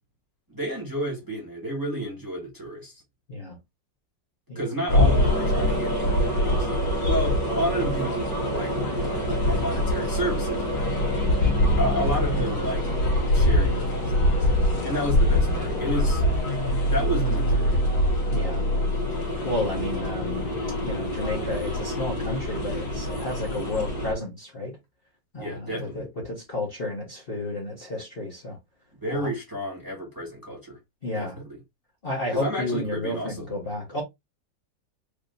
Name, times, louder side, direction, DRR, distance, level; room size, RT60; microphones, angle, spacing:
voice 1, 0.5-2.9 4.5-6.7 7.0-8.8 9.0-10.9 11.8-12.9 13.3-14.5 14.8-16.2 16.9-17.8 25.4-26.0 29.0-30.8 31.1-31.3 32.3-33.5, right 1 dB, 10° right, 1.5 m, -31 dB
sound 1, 4.9-24.1, left 1 dB, 70° left, 2.2 m, -24 dB
voice 2, 11.2-11.6 18.3-18.6 19.4-24.7 25.3-28.6 29.1-29.3 31.0-31.4 32.0-34.0, left 2 dB, 35° left, 1.2 m, -32 dB
4.8 x 2.9 x 2.6 m
omnidirectional pair, 2.0 m